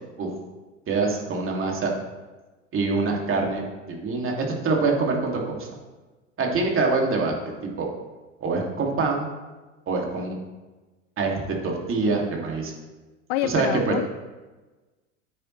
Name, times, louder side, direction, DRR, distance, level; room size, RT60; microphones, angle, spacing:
voice 1, 0.9-1.9 2.7-3.6 3.9-5.7 6.4-7.3 7.6-7.9 8.4-9.3 9.9-10.4 11.2-12.7 13.4-13.9, right 3 dB, 35° right, 0 dB, 2.6 m, -25 dB
voice 2, 13.3-14.1, left 14 dB, 60° left, 11 dB, 0.5 m, -27 dB
12.0 x 9.2 x 3.3 m, 1.2 s
hypercardioid pair, 90°, 37 cm